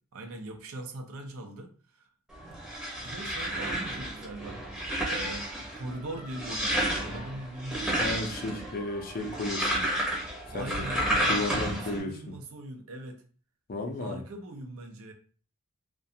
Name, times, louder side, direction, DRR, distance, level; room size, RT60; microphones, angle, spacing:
voice 1, 0.1-2.1 3.0-4.6 5.1-5.5 5.7-8.0 10.5-13.2 14.0-15.1, right 2 dB, 65° right, 0.5 m, -41 dB
sound 1, 2.3-12.0, right 1 dB, 5° right, 0.7 m, -31 dB
voice 2, 8.0-9.8 10.5-11.0 11.3-12.3 13.7-14.2, left 2 dB, 40° left, 0.5 m, -34 dB
2.4 x 2.2 x 2.7 m
head